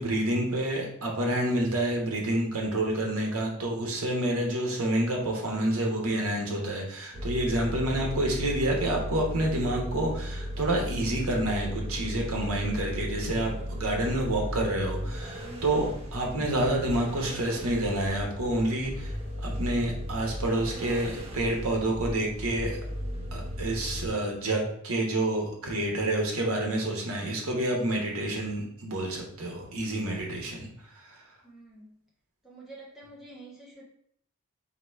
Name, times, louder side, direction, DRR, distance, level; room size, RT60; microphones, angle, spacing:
voice 1, 0.0-19.2 19.4-22.8 23.3-31.2, right 1 dB, 70° right, 0 dB, 1.2 m, -28 dB
sound 1, 7.1-24.1, equal, 25° right, 0.7 m, -36 dB
voice 2, 31.4-32.0 32.4-33.8, right 2 dB, ahead, -5 dB, 1.1 m, -48 dB
3.9 x 2.9 x 4.5 m, 0.68 s
head